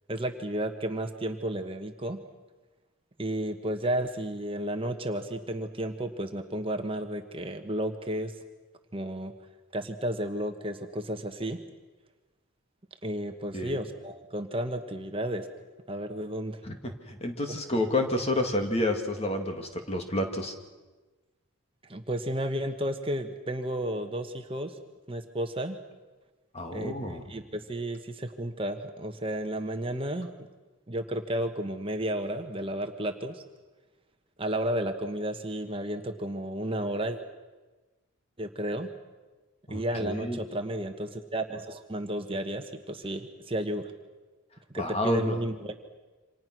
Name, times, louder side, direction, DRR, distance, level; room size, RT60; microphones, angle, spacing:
voice 1, 0.1-2.2 3.2-8.3 8.9-9.3 9.7-11.6 13.0-15.5 15.9-16.6 17.5-17.6 21.9-24.8 25.1-25.8 26.7-30.5 30.9-33.4 34.4-37.2 38.4-38.9 39.7-43.9 44.7-45.5, right 1 dB, 25° right, 5 dB, 1.3 m, -32 dB
voice 2, 13.5-13.8 16.6-20.5 26.5-27.2 39.7-40.4 44.8-45.4, left 1 dB, 30° left, 4 dB, 2.3 m, -30 dB
28.5 x 26.5 x 6.2 m, 1.2 s
head